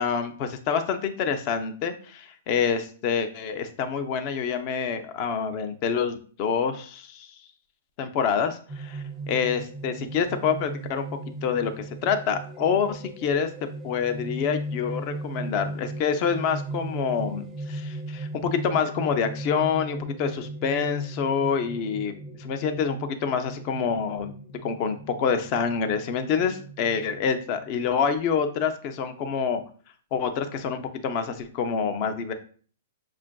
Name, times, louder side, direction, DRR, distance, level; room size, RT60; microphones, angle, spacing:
voice 1, 0.0-7.3 8.0-11.1 11.4-13.5 13.8-24.3 24.6-29.6 30.1-32.3, left 6 dB, 40° left, 8 dB, 0.5 m, -27 dB
sound 1, 8.7-27.9, right 2 dB, 15° right, 0.5 m, -37 dB
5.8 x 2.4 x 2.2 m, 0.43 s
hypercardioid pair, 140°, 0 cm